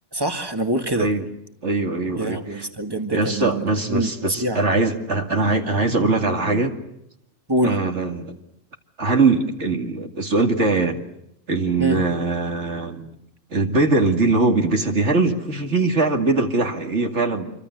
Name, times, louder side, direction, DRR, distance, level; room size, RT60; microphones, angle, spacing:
voice 1, 0.1-1.1 2.2-4.6 7.5-7.8 11.8-12.0, right 1 dB, 20° right, 6 dB, 2.1 m, -25 dB
voice 2, 0.9-1.2 1.6-2.7 3.1-6.7 7.6-8.4 9.0-11.0 11.5-13.1 13.5-17.5, right 3 dB, 65° right, 3 dB, 2.6 m, -21 dB
27.5 x 24.5 x 8.0 m, 0.82 s
omnidirectional pair, 1.3 m